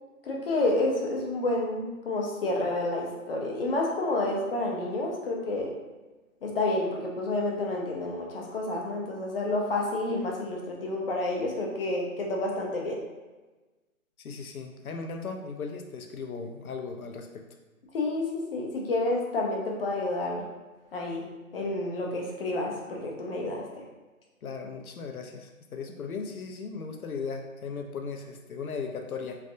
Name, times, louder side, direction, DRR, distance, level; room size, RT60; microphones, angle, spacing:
voice 1, 0.2-5.7 6.4-13.0 17.9-20.4 20.9-21.2 21.5-23.6, left 2 dB, 45° left, -1 dB, 0.6 m, -29 dB
voice 2, 14.2-17.4 24.4-29.4, left 5 dB, 85° left, 4 dB, 0.6 m, -37 dB
3.3 x 2.1 x 2.5 m, 1.2 s
figure-of-eight pair, 140°, 42 cm